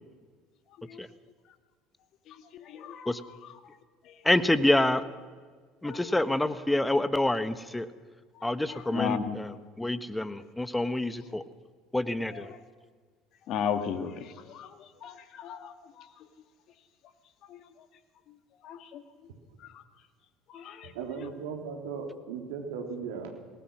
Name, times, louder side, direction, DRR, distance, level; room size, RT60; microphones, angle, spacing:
voice 1, 2.3-3.1 5.8-6.0 8.9-9.3 13.5-14.7 15.0-16.1 17.5-17.6 18.6-19.0 20.5-20.9, left 7 dB, 55° left, 9 dB, 1.9 m, -35 dB
voice 2, 4.2-5.0 5.8-7.9 8.4-11.4 11.9-12.5, left 1 dB, 10° left, 13 dB, 1.4 m, -27 dB
voice 3, 20.9-23.3, right 6 dB, 75° right, 3 dB, 3.6 m, -37 dB
25.5 x 19.0 x 6.3 m, 1.6 s
hypercardioid pair, 65°, 0 cm